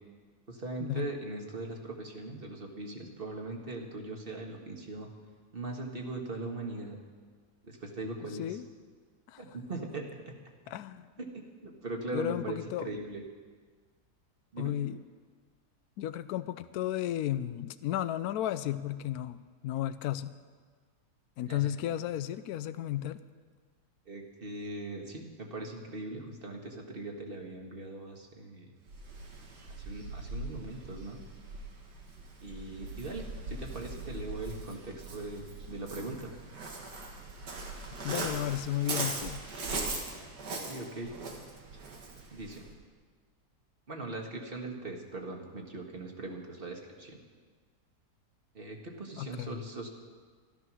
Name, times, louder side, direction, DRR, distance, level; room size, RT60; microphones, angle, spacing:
voice 1, 0.5-5.1 5.5-7.0 7.6-8.6 9.4-10.5 11.2-13.2 14.5-14.7 21.4-21.7 24.0-28.7 29.7-31.2 32.4-36.3 40.5-41.1 42.3-42.6 43.9-47.2 48.5-49.9, right 2 dB, 35° right, 2 dB, 1.7 m, -40 dB
voice 2, 8.2-8.6 9.3-9.4 10.7-11.1 12.1-12.9 14.6-15.0 16.0-20.3 21.4-23.2 38.0-39.4 49.2-49.6, left 12 dB, 75° left, 12 dB, 1.0 m, -34 dB
Waves surf, 28.9-42.7, right 3 dB, 85° right, 2.3 m, -40 dB
13.5 x 12.5 x 6.1 m, 1.5 s
omnidirectional pair, 1.8 m